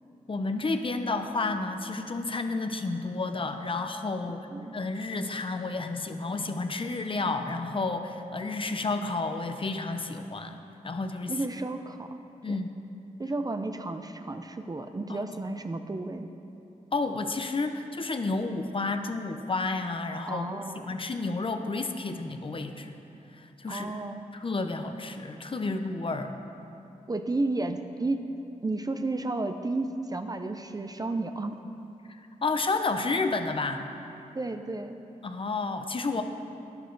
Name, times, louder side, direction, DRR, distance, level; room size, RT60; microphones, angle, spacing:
voice 1, 0.3-4.5 4.7-10.6 10.8-11.4 12.4-12.7 15.1-15.5 16.9-23.0 23.3-23.9 24.3-26.4 32.4-33.9 35.2-36.2, left 3 dB, 40° left, 6 dB, 0.8 m, -31 dB
voice 2, 4.3-4.8 11.3-12.1 12.5-12.6 13.2-16.3 20.3-21.0 23.7-24.3 27.1-28.3 28.6-31.6 34.3-35.0, right 2 dB, 30° right, 7 dB, 0.6 m, -32 dB
11.5 x 10.0 x 4.0 m, 2.8 s
cardioid pair, 60°, 14 cm